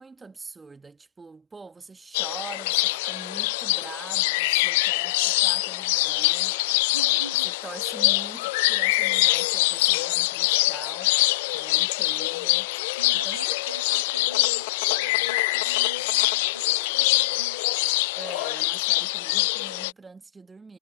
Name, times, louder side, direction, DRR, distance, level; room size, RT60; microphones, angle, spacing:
voice 1, 0.0-11.2 11.5-12.7 13.1-13.4 18.2-20.8, right 4 dB, 10° right, 1.7 m, -44 dB
sound 1, 2.1-19.9, left 22 dB, 50° left, 0.3 m, -24 dB
voice 2, 6.9-7.5 7.9-8.0 13.0-14.7 15.0-17.7, right 2 dB, 85° right, 1.7 m, -42 dB
figure-of-eight pair, 95°, 0 cm